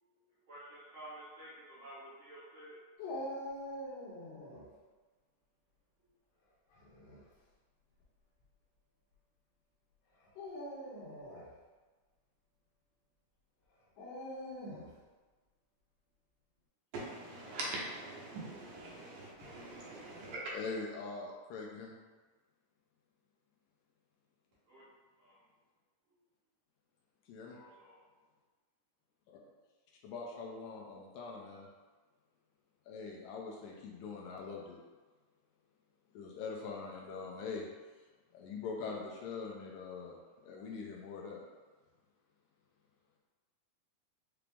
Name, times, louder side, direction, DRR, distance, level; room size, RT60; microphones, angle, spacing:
voice 1, 0.0-2.8 24.7-24.8 25.2-25.4 26.1-26.2 27.5-28.0, right 1 dB, 55° right, -10 dB, 1.5 m, -53 dB
Dog, 3.0-4.7 6.7-7.2 8.0-8.1 10.2-11.5 14.0-15.0, left 1 dB, 65° left, 1.7 m, -43 dB
voice 2, 16.9-20.5, right 2 dB, 85° right, -5 dB, 2.4 m, -43 dB
voice 3, 20.5-22.0 27.3-27.6 30.0-31.7 32.9-34.8 36.1-37.7 38.3-40.2 40.4-41.4, left 4 dB, 80° left, -1 dB, 1.9 m, -43 dB
5.8 x 2.0 x 3.4 m, 1.3 s
omnidirectional pair, 3.6 m